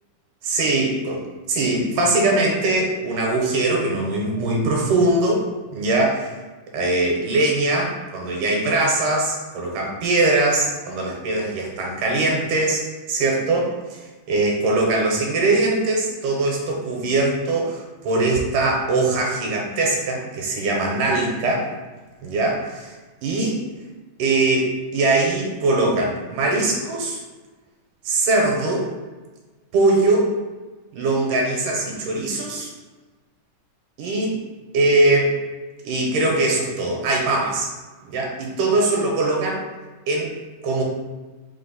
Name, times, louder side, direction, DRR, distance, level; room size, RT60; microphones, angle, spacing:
voice 1, 0.4-6.3 6.7-12.8 13.1-13.8 14.3-21.7 22.2-22.9 23.2-23.6 24.2-27.2 28.1-28.9 29.7-30.3 30.9-32.7 34.0-34.4 34.7-35.3 35.8-37.7 38.1-39.6 40.1-40.4 40.6-40.8, right 2 dB, 80° right, -1 dB, 2.2 m, -21 dB
5.3 x 2.1 x 3.8 m, 1.3 s
omnidirectional pair, 3.8 m